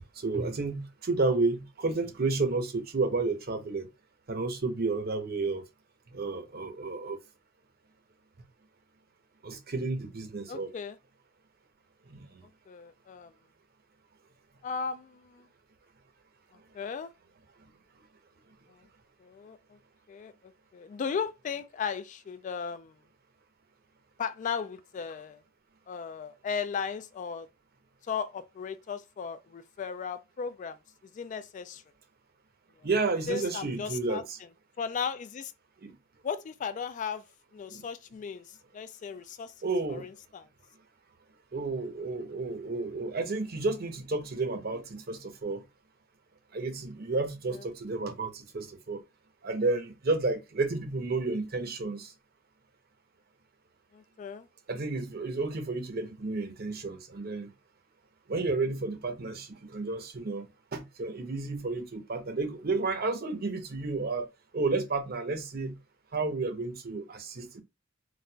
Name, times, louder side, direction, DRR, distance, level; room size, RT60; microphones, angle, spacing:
voice 1, 0.2-3.9 4.3-5.6 6.1-7.2 9.4-10.7 12.1-12.3 32.8-34.4 35.8-35.9 37.7-37.8 39.6-40.1 41.5-45.6 46.5-49.0 49.4-52.1 54.7-57.5 58.3-64.3 64.5-65.7 66.1-67.6, right 3 dB, 55° right, 0.8 m, -31 dB
voice 2, 10.5-11.0 12.7-13.3 14.6-15.5 16.5-17.1 18.7-18.9 19.2-19.8 20.1-23.0 24.2-25.4 25.9-27.5 28.1-31.8 32.8-32.9 33.3-34.2 34.8-35.5 36.2-37.2 37.5-39.5 39.9-40.5 47.5-47.6 53.9-54.5, left 6 dB, 40° left, 0.3 m, -36 dB
4.1 x 2.4 x 2.2 m
head